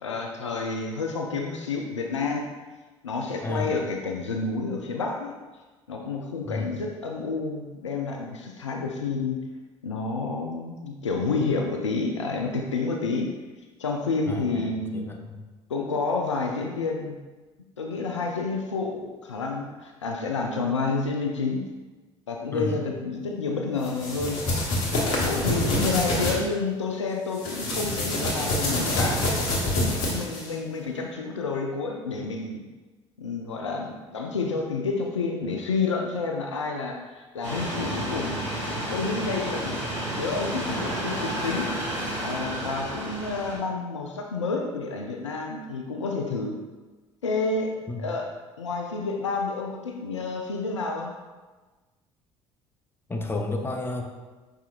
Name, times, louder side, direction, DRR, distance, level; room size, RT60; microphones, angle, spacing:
voice 1, 0.0-2.4 3.0-5.4 5.9-9.4 9.8-13.3 13.8-15.1 15.7-17.2 17.8-21.6 22.3-24.4 25.0-29.2 29.6-32.6 33.2-38.4 38.9-39.8 40.2-41.7 42.2-46.6 47.2-47.7 48.0-48.3 48.6-51.1, left 4 dB, 85° left, 2 dB, 0.4 m, -29 dB
voice 2, 3.4-3.7 6.5-6.7 14.3-15.4 22.5-22.8 47.9-48.0 53.1-54.0, left 2 dB, 15° left, 1 dB, 0.7 m, -31 dB
sound 1, 23.8-26.4 27.3-30.5, left 1 dB, 65° left, 1.1 m, -26 dB
sound 2, 37.4-43.6, right 1 dB, 90° right, 1.1 m, -31 dB
5.7 x 3.6 x 2.4 m, 1.2 s
figure-of-eight pair, 55°, 15 cm